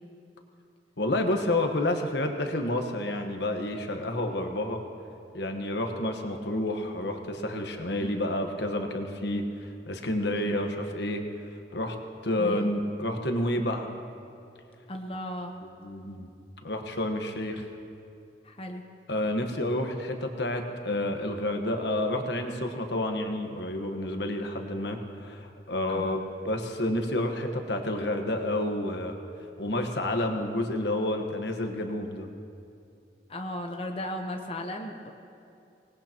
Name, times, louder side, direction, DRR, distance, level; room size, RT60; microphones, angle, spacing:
voice 1, 1.0-4.8 5.3-11.2 11.7-12.0 12.2-13.9 15.8-16.3 16.6-17.6 19.1-29.1 29.6-32.3, left 1 dB, 85° left, 4 dB, 1.3 m, -29 dB
voice 2, 10.4-10.7 12.4-12.7 14.9-15.6 18.4-18.8 25.9-26.2 33.3-35.1, equal, 30° left, 2 dB, 1.0 m, -36 dB
25.0 x 19.0 x 3.0 m, 2.5 s
head